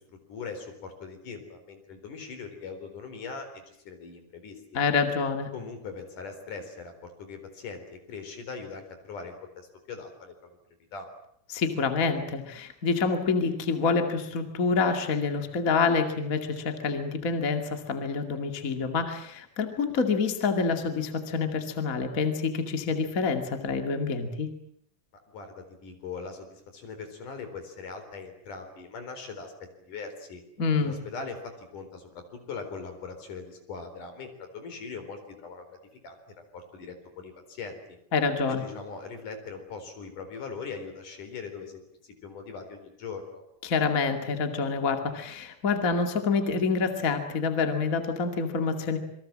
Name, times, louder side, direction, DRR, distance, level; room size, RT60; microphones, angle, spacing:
voice 1, 0.1-4.8 5.5-10.3 10.9-11.1 25.3-29.5 29.8-30.4 30.8-35.8 36.0-36.2 36.5-38.0 38.5-41.8 42.2-43.4, left 5 dB, 70° left, 7 dB, 5.6 m, -41 dB
voice 2, 4.7-5.5 11.5-24.5 30.6-30.9 38.1-38.6 43.6-49.0, left 4 dB, 30° left, 6 dB, 2.3 m, -27 dB
27.5 x 23.0 x 7.6 m, 0.68 s
omnidirectional pair, 3.8 m